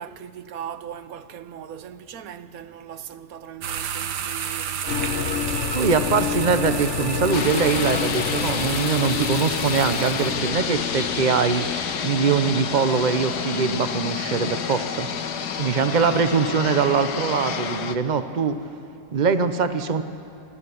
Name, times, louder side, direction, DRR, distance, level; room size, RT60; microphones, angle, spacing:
voice 1, 0.0-5.4, right 9 dB, 65° right, 1.2 m, -39 dB
sound 1, 3.6-10.4, right 8 dB, 85° right, 1.6 m, -32 dB
sound 2, 4.9-13.7, left 8 dB, 55° left, 1.0 m, -30 dB
voice 2, 5.7-11.6 12.0-15.1 15.6-18.6 19.1-20.0, right 5 dB, 35° right, 0.8 m, -22 dB
sound 3, 7.3-18.0, left 7 dB, 80° left, 1.6 m, -29 dB
25.5 x 14.0 x 9.8 m
omnidirectional pair, 1.7 m